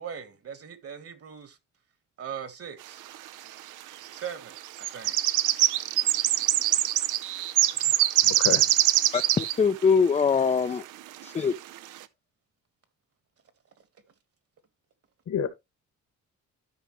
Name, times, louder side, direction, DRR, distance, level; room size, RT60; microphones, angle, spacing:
voice 1, 0.0-1.6 2.2-3.0 4.1-5.2 10.5-10.9, right 8 dB, 50° right, 1.6 m, -40 dB
sound 1, 3.1-3.2 4.1-4.3 4.6-9.6 9.8-9.9 10.3-10.4 11.2-11.3 11.8-12.0, right 14 dB, 85° right, 0.7 m, -23 dB
voice 2, 8.2-8.6 15.3-15.5, left 8 dB, 60° left, 1.8 m, -28 dB
voice 3, 9.1-10.8 11.2-11.5, left 5 dB, 20° left, 0.5 m, -23 dB
12.5 x 5.1 x 3.1 m
cardioid pair, 90°, 30 cm